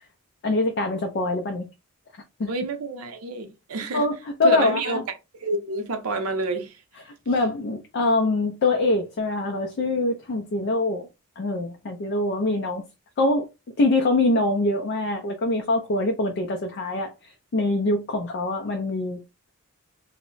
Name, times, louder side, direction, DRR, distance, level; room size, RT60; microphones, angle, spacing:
voice 1, 0.4-1.7 2.4-2.5 3.9-5.0 7.3-11.1 11.4-12.8 13.2-13.5 13.8-19.2, left 2 dB, 50° left, 0.3 m, -24 dB
voice 2, 2.5-4.1 4.4-5.0 5.4-6.8, right 3 dB, 75° right, 0.6 m, -28 dB
2.0 x 2.0 x 3.7 m
head